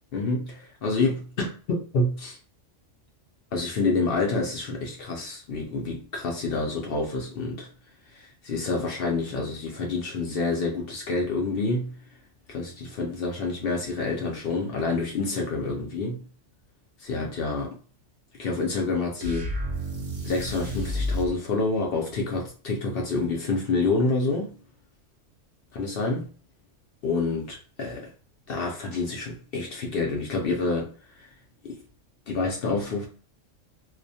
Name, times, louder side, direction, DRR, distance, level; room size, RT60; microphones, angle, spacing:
voice 1, 0.1-2.4 3.5-7.7 8.1-11.9 12.5-16.2 17.0-17.8 18.4-19.5 20.2-24.6 25.7-26.3 27.0-28.1 28.5-31.3 31.6-31.8 32.3-33.1, left 3 dB, 65° left, 0.6 m, -28 dB
sound 1, 19.2-21.4, equal, 65° right, 0.9 m, -30 dB
2.4 x 2.1 x 2.6 m
omnidirectional pair, 1.3 m